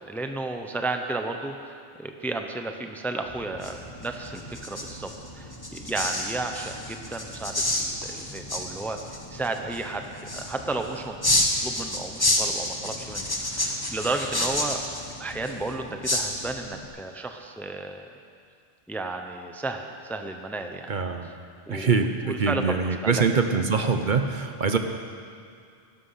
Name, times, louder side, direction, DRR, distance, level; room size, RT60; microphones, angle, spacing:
voice 1, 0.0-9.0 9.3-11.1 11.6-14.8 15.2-18.2 18.9-20.9 21.7-22.6 23.0-23.2, right 2 dB, ahead, 5 dB, 0.7 m, -33 dB
sound 1, 3.3-16.8, left 1 dB, 20° left, 1.4 m, -30 dB
voice 2, 20.9-21.3 21.7-24.8, right 5 dB, 50° right, 6 dB, 0.9 m, -24 dB
17.0 x 12.5 x 5.8 m, 2.3 s
omnidirectional pair, 1.1 m